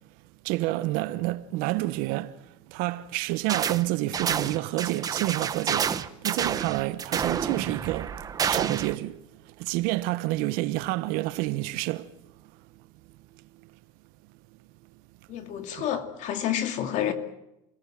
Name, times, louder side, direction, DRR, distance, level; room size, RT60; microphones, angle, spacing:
voice 1, 0.4-8.2 8.4-12.1 15.8-15.9, right 18 dB, 55° right, 1.1 m, -29 dB
sound 1, 3.5-3.8 4.1-8.9, right 7 dB, 20° right, 0.9 m, -29 dB
voice 2, 15.3-17.1, left 10 dB, 45° left, 2.5 m, -29 dB
29.5 x 18.5 x 7.6 m
supercardioid pair, 150°, 18 cm